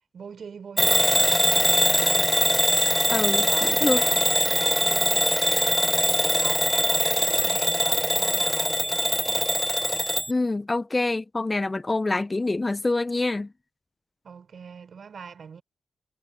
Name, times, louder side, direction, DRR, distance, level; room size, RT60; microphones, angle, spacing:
voice 1, 0.1-2.4 3.3-9.5 14.2-15.6, right 6 dB, 65° right, 5.2 m, -42 dB
Bell / Alarm, 0.8-10.3, equal, 5° left, 0.9 m, -22 dB
voice 2, 3.1-4.0 10.3-13.5, left 2 dB, 30° left, 0.9 m, -26 dB
supercardioid pair, 40°, 0 cm